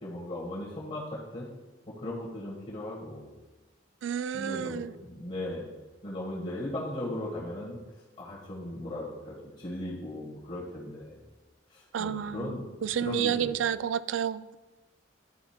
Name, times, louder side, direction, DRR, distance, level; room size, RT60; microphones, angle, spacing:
voice 1, 0.0-1.5 1.9-3.3 4.3-5.7 6.0-7.8 8.2-11.2 11.7-12.6 13.0-13.5, left 1 dB, 35° left, -5 dB, 1.6 m, -37 dB
voice 2, 4.0-4.9 11.9-12.5 12.8-14.5, right 8 dB, 85° right, 17 dB, 0.3 m, -30 dB
11.5 x 4.2 x 4.3 m, 1.2 s
head